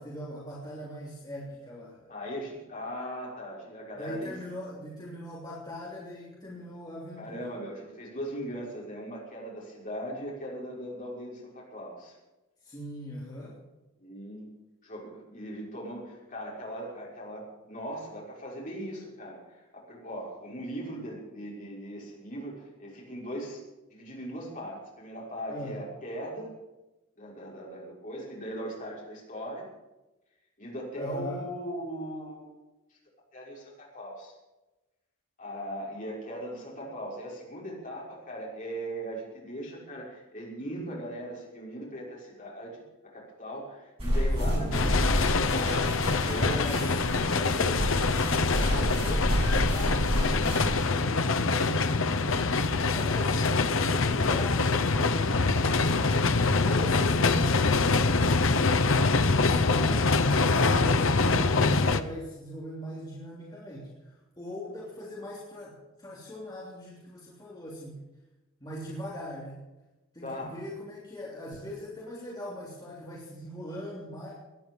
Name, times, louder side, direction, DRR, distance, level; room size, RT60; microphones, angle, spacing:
voice 1, 0.0-2.2 3.9-7.4 12.6-13.6 25.5-25.8 31.0-31.5 44.4-44.7 46.4-52.2 52.8-56.2 56.6-59.0 59.4-68.0 68.6-69.6 70.1-74.3, equal, 20° left, -5 dB, 3.2 m, -41 dB
voice 2, 2.1-4.3 7.2-12.2 14.0-14.5 14.8-23.6 23.9-26.5 27.2-29.7 30.6-32.5 32.9-33.0 33.3-34.3 35.4-47.0 70.2-70.6, equal, 40° left, -4 dB, 6.0 m, -39 dB
sound 1, 44.0-50.8, equal, 25° right, 6.7 m, -29 dB
sound 2, 44.7-62.0, left 3 dB, 65° left, 0.8 m, -25 dB
18.0 x 11.0 x 7.2 m, 1.0 s
head